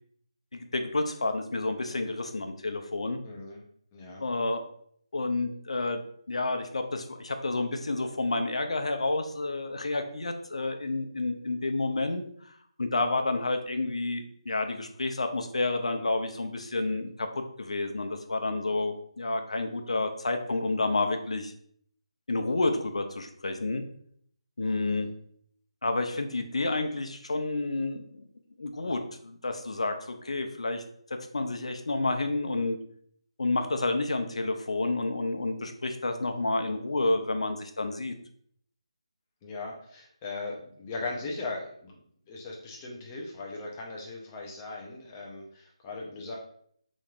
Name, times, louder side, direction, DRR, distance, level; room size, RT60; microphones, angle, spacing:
voice 1, 0.5-3.2 4.2-4.6 5.1-6.0 6.3-21.5 22.3-23.8 24.6-25.1 25.8-28.2 28.6-30.8 31.3-32.8 33.4-38.1, left 2 dB, 80° left, 6 dB, 0.6 m, -30 dB
voice 2, 3.2-3.6 3.9-4.2 24.9-25.1 39.4-42.0 42.3-46.4, left 3 dB, 20° left, -1 dB, 0.7 m, -38 dB
5.1 x 3.1 x 2.4 m, 0.63 s
figure-of-eight pair, 165°, 3 cm